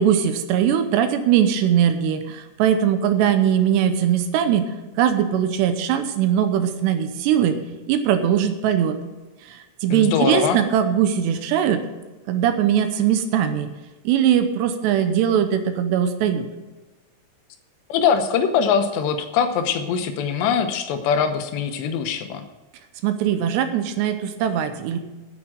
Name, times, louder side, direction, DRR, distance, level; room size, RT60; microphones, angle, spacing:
voice 1, 0.0-4.6 5.0-7.6 7.9-9.0 9.5-11.8 12.3-13.7 14.0-16.5 23.0-25.0, right 9 dB, 80° right, 8 dB, 2.9 m, -20 dB
voice 2, 9.9-10.6 17.9-22.4, left 7 dB, 80° left, 7 dB, 3.0 m, -22 dB
9.4 x 8.5 x 7.5 m, 1.2 s
omnidirectional pair, 5.0 m